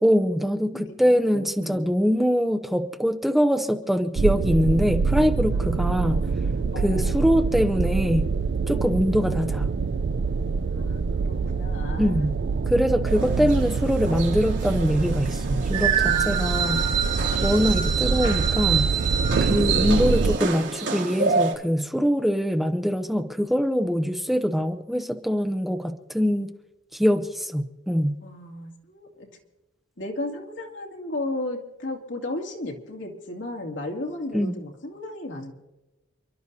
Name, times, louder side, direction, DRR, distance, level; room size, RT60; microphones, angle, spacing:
voice 1, 0.0-6.2 6.8-8.3 8.7-9.7 12.0-12.4 12.7-16.8 17.4-18.9 19.4-26.5 26.9-28.2 34.3-34.5, equal, ahead, 6 dB, 0.6 m, -23 dB
voice 2, 0.7-1.9 5.5-7.3 10.7-12.1 16.1-17.1 28.2-29.4 30.0-35.5, left 1 dB, 80° left, 0 dB, 2.7 m, -35 dB
sound 1, 4.2-20.4, right 4 dB, 65° right, 0.4 m, -25 dB
sound 2, 13.0-21.5, right 6 dB, 80° right, 3.0 m, -27 dB
29.0 x 12.0 x 2.8 m, 1.0 s
head